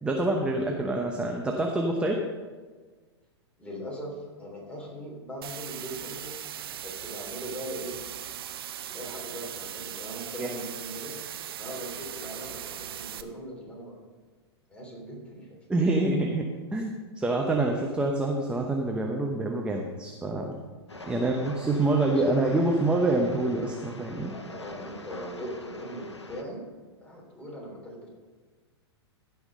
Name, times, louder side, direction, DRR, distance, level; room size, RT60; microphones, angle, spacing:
voice 1, 0.0-2.2 10.4-10.6 15.7-20.6 21.0-24.3, right 2 dB, 5° right, 1 dB, 0.9 m, -26 dB
voice 2, 3.6-6.4 6.8-8.0 8.8-11.2 11.6-14.1 14.7-15.5 21.2-22.4 24.3-26.7 27.0-28.1, equal, 10° left, -2 dB, 3.4 m, -40 dB
sound 1, 5.4-13.2, right 11 dB, 60° right, 0.7 m, -39 dB
Train, 20.9-26.4, left 2 dB, 85° left, 0.8 m, -44 dB
15.5 x 5.8 x 5.4 m, 1.4 s
figure-of-eight pair, 100°, 14 cm